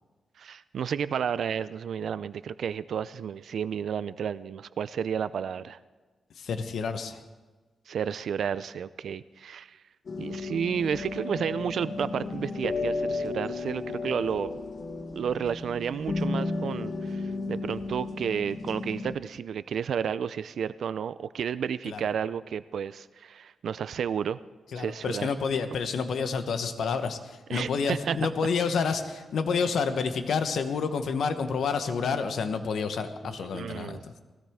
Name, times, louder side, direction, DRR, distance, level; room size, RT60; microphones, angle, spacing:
voice 1, 0.4-5.8 7.9-9.8 10.2-14.6 15.1-24.4 24.8-25.3 27.5-28.2 33.2-34.0, right 7 dB, 65° right, 15 dB, 0.4 m, -32 dB
voice 2, 6.4-7.2 21.9-22.0 24.7-34.2, left 5 dB, 70° left, 8 dB, 1.0 m, -29 dB
sound 1, 10.1-19.2, left 3 dB, 45° left, 1.3 m, -33 dB
20.0 x 16.5 x 3.6 m, 1.3 s
wide cardioid pair, 135°, 0 cm